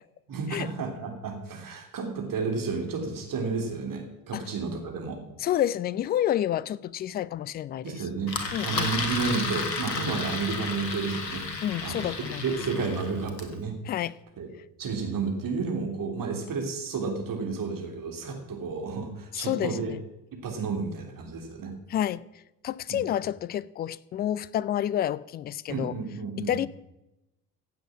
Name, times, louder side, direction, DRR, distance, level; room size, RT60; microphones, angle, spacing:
voice 1, 0.3-5.2 7.8-8.3 8.6-11.5 11.8-12.1 12.4-13.7 14.4-14.5 14.8-19.9 20.4-21.7 22.9-23.0 25.7-26.5, right 4 dB, 40° right, 3.3 m, -31 dB
voice 2, 5.4-8.0 8.5-8.9 11.6-12.5 13.9-14.2 19.3-20.0 21.9-22.2 22.6-26.0 26.4-26.7, left 11 dB, 20° left, 0.3 m, -29 dB
Engine, 8.3-13.5, left 4 dB, 85° left, 1.5 m, -32 dB
15.5 x 7.8 x 6.1 m
figure-of-eight pair, 55°, 50 cm